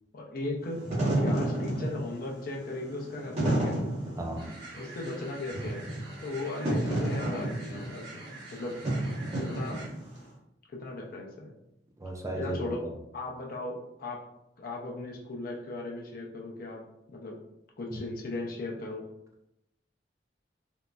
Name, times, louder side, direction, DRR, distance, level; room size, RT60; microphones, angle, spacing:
voice 1, 0.1-0.9 1.2-3.8 4.7-5.9 6.2-8.3 8.5-8.8 9.4-9.8 10.7-11.6 12.4-14.2 14.6-16.8 17.1-17.4 17.8-19.0, left 2 dB, 50° left, -1 dB, 0.5 m, -37 dB
Wind / Fire, 0.7-10.2, right 1 dB, 35° right, 1.0 m, -31 dB
voice 2, 4.2-4.5 12.0-12.9, right 1 dB, 15° right, 1 dB, 0.3 m, -35 dB
sound 1, 4.4-9.9, right 2 dB, 85° right, 1.0 m, -47 dB
3.7 x 2.1 x 2.2 m, 0.85 s
head